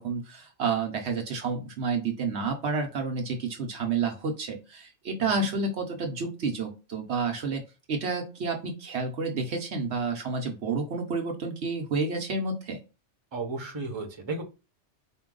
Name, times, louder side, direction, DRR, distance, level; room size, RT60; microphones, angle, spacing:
voice 1, 0.0-7.6 7.9-12.8, right 4 dB, 70° right, 3 dB, 1.0 m, -30 dB
voice 2, 13.3-14.4, right 3 dB, 25° right, 3 dB, 0.9 m, -34 dB
4.5 x 2.3 x 3.7 m, 0.30 s
omnidirectional pair, 1.2 m